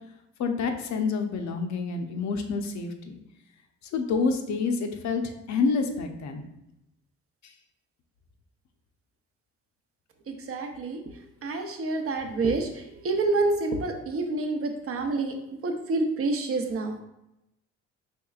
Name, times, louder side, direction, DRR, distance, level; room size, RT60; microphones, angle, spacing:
voice 1, 0.4-3.2 3.9-6.4, left 4 dB, 65° left, 5 dB, 0.6 m, -28 dB
voice 2, 10.3-11.0 11.4-12.7 13.0-15.3 15.6-17.0, right 3 dB, 50° right, 4 dB, 0.6 m, -27 dB
4.4 x 3.2 x 2.3 m, 0.87 s
cardioid pair, 90°, 30 cm